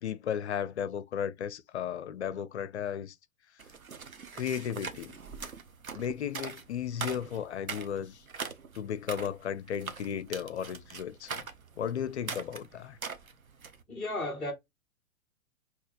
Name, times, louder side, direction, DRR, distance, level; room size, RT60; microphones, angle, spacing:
voice 1, 0.0-3.2 4.3-5.1 5.9-8.2 8.7-11.5 11.8-13.0, left 9 dB, 55° left, 0.5 m, -35 dB
sound 1, 3.6-13.8, right 5 dB, 85° right, 0.8 m, -42 dB
voice 2, 13.9-14.5, left 1 dB, ahead, 0.4 m, -34 dB
5.5 x 2.9 x 2.3 m
figure-of-eight pair, 110°, 41 cm